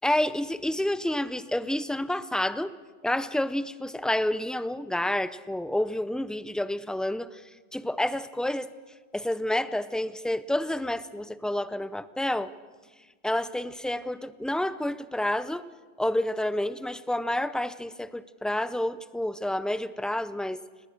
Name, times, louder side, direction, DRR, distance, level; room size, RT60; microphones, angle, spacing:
voice 1, 0.0-2.7 3.0-7.4 7.7-8.7 9.1-12.5 13.2-15.7 16.0-20.6, left 1 dB, ahead, 14 dB, 0.4 m, -29 dB
28.5 x 19.5 x 6.5 m, 1.4 s
omnidirectional pair, 1.1 m